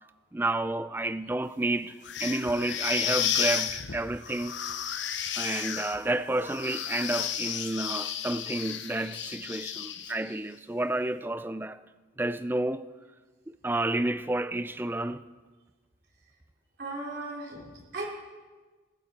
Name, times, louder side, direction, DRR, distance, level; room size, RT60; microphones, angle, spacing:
voice 1, 0.3-4.6 5.4-11.8 12.2-12.8 13.6-15.2, right 2 dB, 10° right, 0.3 m, -30 dB
sound 1, 2.0-10.3, left 9 dB, 75° left, 0.9 m, -33 dB
voice 2, 16.8-18.0, right 2 dB, 55° right, 3.5 m, -37 dB
15.0 x 14.5 x 4.3 m
head